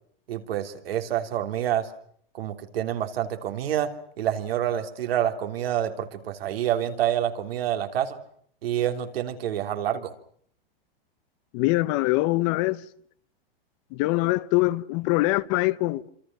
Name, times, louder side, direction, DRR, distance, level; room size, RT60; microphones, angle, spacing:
voice 1, 0.3-1.9 2.3-3.9 4.2-8.2 8.6-10.1, right 11 dB, 80° right, 3.5 m, -27 dB
voice 2, 11.5-12.8 13.9-16.1, left 20 dB, 40° left, 1.0 m, -23 dB
27.5 x 26.0 x 6.1 m
supercardioid pair, 140°, 29 cm